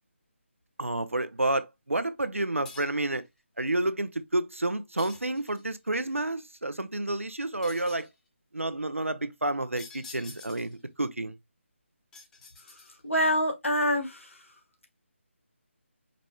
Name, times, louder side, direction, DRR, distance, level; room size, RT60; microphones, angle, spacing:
voice 1, 0.8-3.2 3.6-8.1 8.5-11.4, right 2 dB, 85° right, 0.6 m, -30 dB
sound 1, 2.7-3.1 5.0-5.7 7.6-8.2 9.8-10.8 12.1-13.2, left 4 dB, 5° left, 0.5 m, -48 dB
voice 2, 13.0-14.4, equal, 75° left, 1.4 m, -26 dB
5.1 x 2.9 x 2.2 m
figure-of-eight pair, 155°, 7 cm